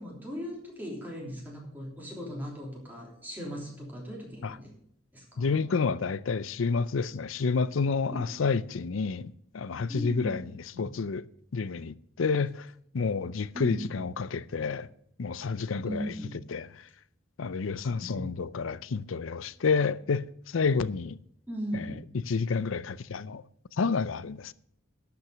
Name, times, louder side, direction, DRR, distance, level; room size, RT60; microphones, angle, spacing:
voice 1, 0.0-4.7 5.1-5.6 8.1-8.2 9.9-10.3 10.7-10.9 13.5-14.0 15.8-16.5 17.8-18.3 21.5-22.0, equal, 10° right, 3.2 m, -38 dB
voice 2, 5.4-10.4 10.8-11.2 11.5-14.9 15.2-16.1 16.5-16.7 17.4-21.2 21.7-21.9 22.3-23.4 23.8-24.5, left 5 dB, 85° left, 0.5 m, -29 dB
11.5 x 6.0 x 7.8 m
head